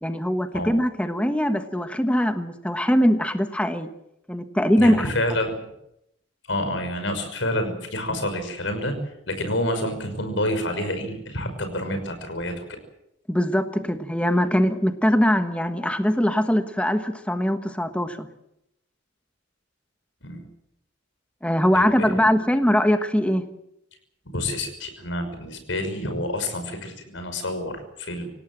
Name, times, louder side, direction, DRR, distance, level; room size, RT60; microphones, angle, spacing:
voice 1, 0.0-3.9 4.3-5.1 13.3-18.3 21.4-23.5, equal, 5° left, 7 dB, 1.3 m, -22 dB
voice 2, 4.8-5.5 6.5-8.9 9.3-12.5 20.2-20.5 21.7-22.3 24.3-28.3, left 1 dB, 85° left, 8 dB, 5.9 m, -28 dB
26.5 x 18.0 x 7.7 m, 0.80 s
head